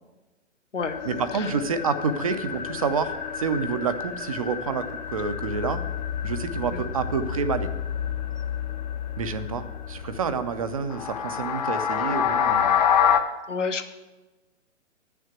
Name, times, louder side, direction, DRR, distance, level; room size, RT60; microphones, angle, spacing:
sound 1, 0.8-13.2, left 8 dB, 35° left, 0.7 m, -28 dB
voice 1, 1.0-5.8 6.2-7.7 9.2-12.8, right 5 dB, 30° right, 11 dB, 0.5 m, -28 dB
voice 2, 13.5-13.9, left 5 dB, 70° left, 7 dB, 1.1 m, -29 dB
10.0 x 6.7 x 7.8 m, 1.2 s
figure-of-eight pair, 130°, 38 cm